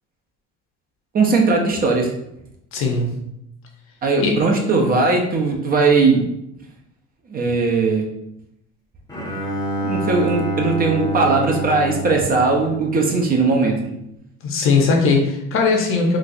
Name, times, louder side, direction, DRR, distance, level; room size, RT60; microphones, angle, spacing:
voice 1, 1.1-2.1 4.0-6.2 7.3-8.1 9.8-13.8, right 3 dB, 30° right, 1 dB, 0.5 m, -18 dB
voice 2, 2.7-3.2 4.2-4.3 14.4-16.2, left 4 dB, 45° left, 1 dB, 0.7 m, -19 dB
Bowed string instrument, 9.1-13.4, right 1 dB, 10° left, 0.7 m, -27 dB
3.9 x 2.4 x 2.6 m, 0.80 s
cardioid pair, 130°, 29 cm